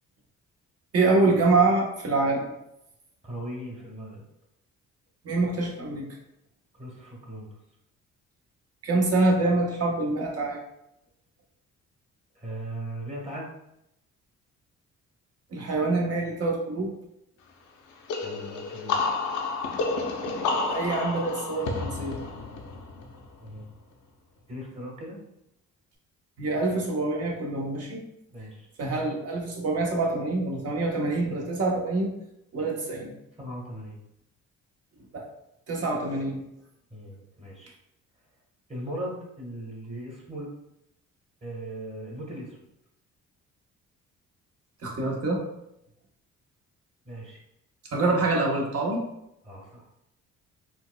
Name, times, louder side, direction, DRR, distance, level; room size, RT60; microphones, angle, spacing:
voice 1, 0.9-2.5 5.2-6.1 8.8-10.6 15.5-16.9 20.7-22.2 26.4-28.0 28.8-32.1 32.5-33.1 35.1-35.2 35.7-36.4 44.8-45.4 47.9-49.1, right 3 dB, 55° right, -1 dB, 1.0 m, -25 dB
voice 2, 3.2-4.2 6.7-7.6 12.3-13.5 18.2-19.0 23.4-23.7 24.5-25.2 28.3-28.7 33.4-34.0 36.9-37.7 38.7-40.5 41.4-42.6 47.0-47.4 49.4-49.9, right 1 dB, 20° right, -3 dB, 1.3 m, -38 dB
sound 1, 18.1-23.6, left 3 dB, 75° left, 0.7 m, -30 dB
4.3 x 2.4 x 2.2 m, 0.81 s
cardioid pair, 90°, 30 cm